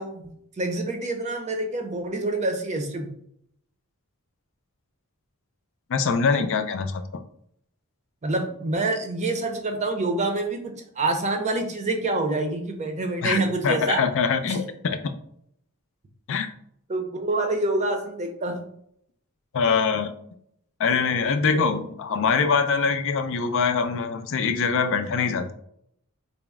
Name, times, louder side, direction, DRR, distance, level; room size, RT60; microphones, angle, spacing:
voice 1, 0.0-3.1 8.2-14.0 14.5-14.6 16.9-18.7 21.5-21.8, right 2 dB, 30° right, 4 dB, 0.6 m, -27 dB
voice 2, 5.9-7.0 13.2-13.4 13.6-15.1 16.3-16.5 19.5-20.1 20.8-25.5, left 5 dB, 60° left, 7 dB, 0.4 m, -23 dB
4.0 x 2.0 x 3.5 m, 0.70 s
head